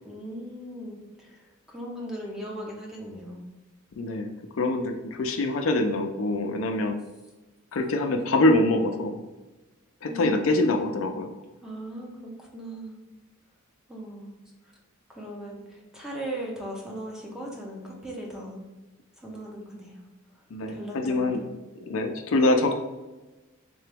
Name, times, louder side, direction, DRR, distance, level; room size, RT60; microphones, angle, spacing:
voice 1, 0.0-1.4 1.7-3.4 10.1-10.6 11.6-13.0 13.9-14.3 15.1-18.6 19.2-20.0 20.7-21.5, right 1 dB, 5° right, -2 dB, 0.7 m, -38 dB
voice 2, 4.0-4.3 4.6-7.0 7.7-9.2 10.0-11.3 20.5-21.4 21.8-22.8, left 2 dB, 65° left, 5 dB, 0.4 m, -24 dB
3.8 x 2.9 x 3.4 m, 1.1 s
head